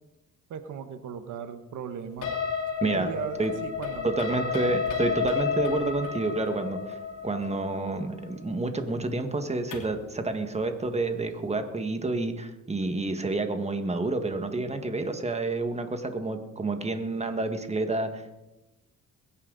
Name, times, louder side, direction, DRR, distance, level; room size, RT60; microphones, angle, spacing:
voice 1, 0.5-2.3 2.9-4.1, right 7 dB, 75° right, 9 dB, 1.2 m, -37 dB
sound 1, 2.2-10.0, left 6 dB, 80° left, 2.9 m, -32 dB
voice 2, 4.0-7.0 7.2-18.3, right 2 dB, 20° right, 7 dB, 1.8 m, -29 dB
22.0 x 10.0 x 4.1 m, 0.99 s
cardioid pair, 90°, 30 cm